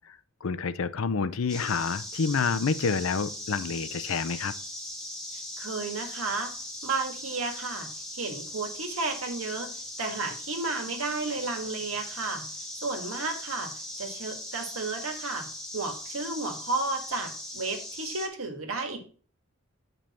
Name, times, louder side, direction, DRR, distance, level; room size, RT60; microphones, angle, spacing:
voice 1, 0.1-4.5, left 5 dB, 70° left, 14 dB, 0.5 m, -28 dB
sound 1, 1.5-18.3, left 1 dB, 5° left, 1.1 m, -39 dB
voice 2, 5.6-6.5 6.8-7.9 8.1-9.7 10.0-12.5 12.8-13.7 14.0-15.5 15.7-19.0, right 3 dB, 75° right, 4 dB, 1.7 m, -32 dB
7.6 x 5.4 x 4.2 m, 0.41 s
head